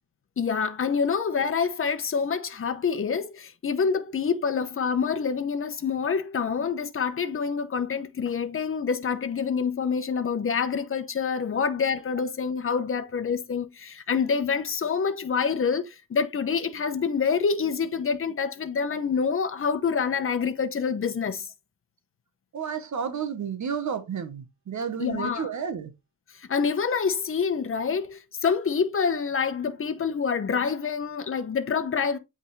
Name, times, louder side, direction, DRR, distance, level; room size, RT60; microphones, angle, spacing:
voice 1, 0.4-21.5 25.0-25.5 26.4-32.2, left 6 dB, 40° left, 1.0 m, -27 dB
voice 2, 22.5-25.9, right 7 dB, 55° right, 1.1 m, -31 dB
8.3 x 3.8 x 3.2 m
cardioid pair, 100°, 34 cm